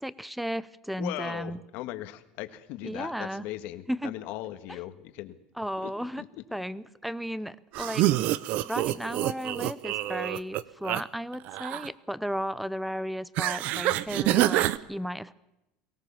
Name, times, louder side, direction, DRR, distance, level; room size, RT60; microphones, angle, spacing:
voice 1, 0.0-1.6 2.8-3.4 3.9-4.1 4.7-4.8 5.6-6.2 6.5-8.1 8.6-15.3, equal, ahead, 18 dB, 0.7 m, -34 dB
voice 2, 1.0-5.3 5.8-5.9 6.2-6.4, left 15 dB, 60° left, 9 dB, 1.8 m, -38 dB
sound 1, 7.7-11.0 11.3-11.9 13.4-14.8, right 15 dB, 55° right, 0.8 m, -27 dB
23.5 x 17.5 x 7.2 m, 0.89 s
supercardioid pair, 140°, 3 cm